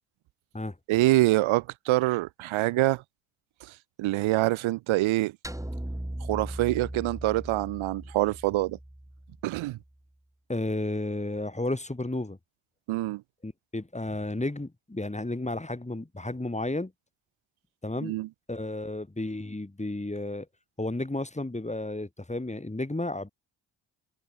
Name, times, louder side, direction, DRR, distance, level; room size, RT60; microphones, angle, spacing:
voice 1, 0.9-3.0 4.0-5.3 6.3-8.8 9.4-9.8 12.9-13.2 18.0-18.3, right 18 dB, 85° right, 1.1 m, -25 dB
sound 1, 5.4-9.8, right 1 dB, 5° right, 4.0 m, -38 dB
voice 2, 10.5-12.4 13.4-16.9 17.8-18.2 18.5-20.5 20.8-23.3, left 2 dB, 15° left, 5.5 m, -32 dB
supercardioid pair, 60°, 46 cm